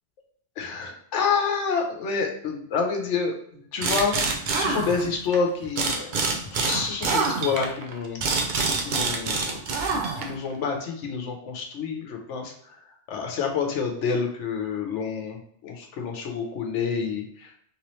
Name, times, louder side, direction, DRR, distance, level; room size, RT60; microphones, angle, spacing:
voice 1, 0.6-8.2 8.5-17.6, left 5 dB, 90° left, 2 dB, 1.0 m, -29 dB
sound 1, 3.8-5.4 5.7-10.5, right 4 dB, 55° right, 0.6 m, -26 dB
3.4 x 3.0 x 3.0 m, 0.67 s
omnidirectional pair, 1.2 m